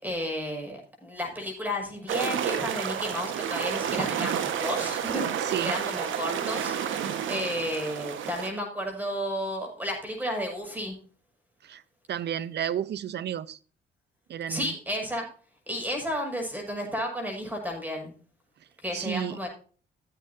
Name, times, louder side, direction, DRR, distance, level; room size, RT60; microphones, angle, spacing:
voice 1, 0.0-6.8 7.3-11.0 14.5-15.3 15.7-18.1 18.8-19.5, equal, 10° right, 6.5 m, -32 dB
sound 1, 2.1-8.5, right 8 dB, 75° right, 1.5 m, -30 dB
voice 2, 5.4-5.7 11.6-11.8 12.1-13.6 14.3-14.7 18.9-19.5, right 10 dB, 60° right, 0.8 m, -32 dB
16.5 x 8.4 x 2.7 m
cardioid pair, 90°, 20 cm